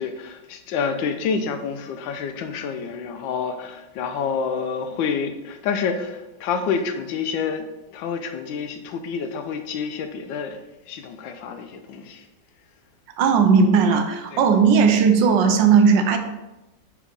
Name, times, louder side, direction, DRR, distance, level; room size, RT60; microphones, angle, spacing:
voice 1, 0.0-7.6 7.9-12.3 14.3-14.5, left 6 dB, 85° left, 7 dB, 1.4 m, -28 dB
voice 2, 13.2-16.2, right 6 dB, 80° right, 6 dB, 1.4 m, -16 dB
6.0 x 4.4 x 3.8 m, 0.99 s
omnidirectional pair, 2.0 m